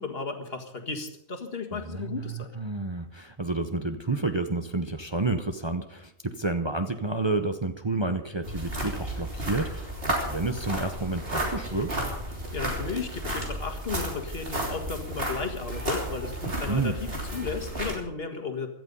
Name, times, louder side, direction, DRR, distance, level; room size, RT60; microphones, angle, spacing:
voice 1, 0.0-2.5 12.5-18.7, left 4 dB, 60° left, 5 dB, 2.0 m, -34 dB
voice 2, 1.7-11.9 16.5-17.0, right 3 dB, 25° right, 7 dB, 0.8 m, -30 dB
sound 1, 8.4-18.0, right 1 dB, 60° right, 3.7 m, -32 dB
17.0 x 12.5 x 5.4 m, 0.81 s
omnidirectional pair, 1.1 m